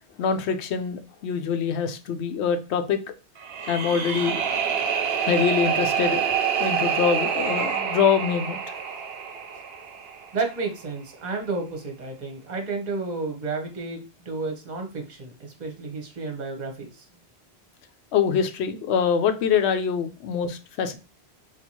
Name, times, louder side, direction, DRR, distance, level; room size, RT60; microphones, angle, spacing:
voice 1, 0.2-3.0 3.7-4.4 5.3-6.2 6.6-8.6 18.1-21.0, left 7 dB, 85° left, 9 dB, 0.9 m, -24 dB
sound 1, 3.4-10.5, right 7 dB, 70° right, 0.8 m, -27 dB
voice 2, 10.3-15.3 15.6-16.9, right 3 dB, 45° right, 3 dB, 1.0 m, -31 dB
4.4 x 2.4 x 2.7 m, 0.32 s
omnidirectional pair, 1.1 m